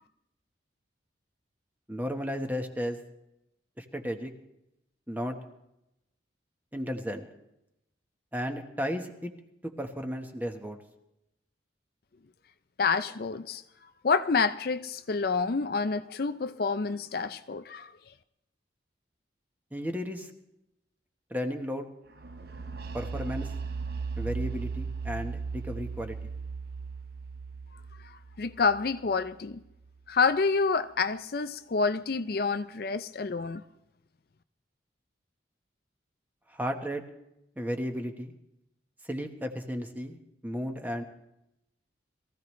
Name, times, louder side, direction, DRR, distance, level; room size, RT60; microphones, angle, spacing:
voice 1, 1.9-3.0 3.8-4.3 5.1-5.4 6.7-7.3 8.3-9.3 9.6-10.8 19.7-20.3 21.3-21.9 22.9-23.5 24.2-26.3 36.5-37.0 37.6-38.3 39.1-40.2 40.4-41.0, equal, 10° right, 1.2 m, -34 dB
voice 2, 12.8-13.6 14.0-17.9 28.0-29.6 30.1-33.6, left 4 dB, 50° left, 0.5 m, -28 dB
sound 1, 22.2-29.9, right 5 dB, 55° right, 0.8 m, -37 dB
22.5 x 15.5 x 3.2 m
head